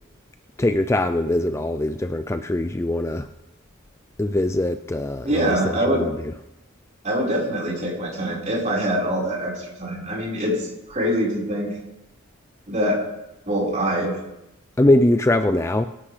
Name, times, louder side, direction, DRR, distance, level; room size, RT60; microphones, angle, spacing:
voice 1, 0.6-3.3 4.2-6.3 14.8-15.9, left 1 dB, 15° left, 8 dB, 0.4 m, -22 dB
voice 2, 5.2-6.0 7.0-11.7 12.7-13.0 13.5-14.2, equal, 35° right, -4 dB, 4.8 m, -24 dB
23.0 x 11.5 x 3.3 m, 0.90 s
head